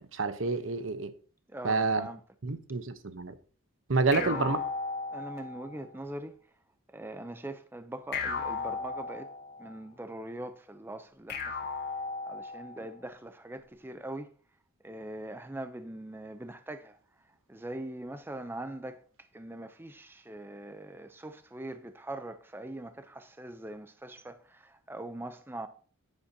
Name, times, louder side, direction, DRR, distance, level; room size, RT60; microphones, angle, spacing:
voice 1, 0.1-1.1 1.6-2.1 2.4-3.3 3.9-4.6, right 3 dB, 70° right, 0.9 m, -28 dB
voice 2, 1.5-2.2 4.1-4.6 5.1-6.4 6.9-9.3 9.6-11.6 12.3-14.3 14.8-17.0 17.5-19.0 19.3-25.7, right 1 dB, 10° right, 0.5 m, -42 dB
sound 1, 4.1-5.7 8.1-9.7 11.3-12.8, left 4 dB, 50° left, 2.0 m, -35 dB
10.5 x 9.9 x 2.8 m
head